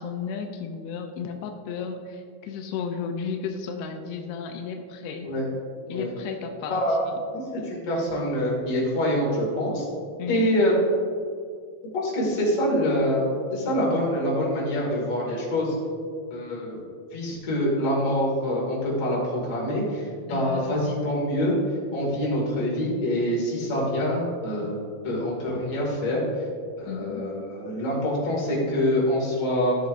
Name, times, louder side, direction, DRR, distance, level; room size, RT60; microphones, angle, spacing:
voice 1, 0.0-5.3 5.9-6.8 7.1-7.2 10.2-10.5 20.3-20.8 26.9-27.2, left 6 dB, 90° left, 5 dB, 2.6 m, -33 dB
voice 2, 6.6-9.8 10.3-10.7 11.9-13.3 13.5-15.7 16.3-16.8 17.1-20.0 20.3-21.5 21.9-24.7 25.0-26.2 26.8-29.8, equal, 45° left, -4 dB, 2.8 m, -25 dB
13.0 x 7.1 x 2.6 m, 2.1 s
omnidirectional pair, 4.4 m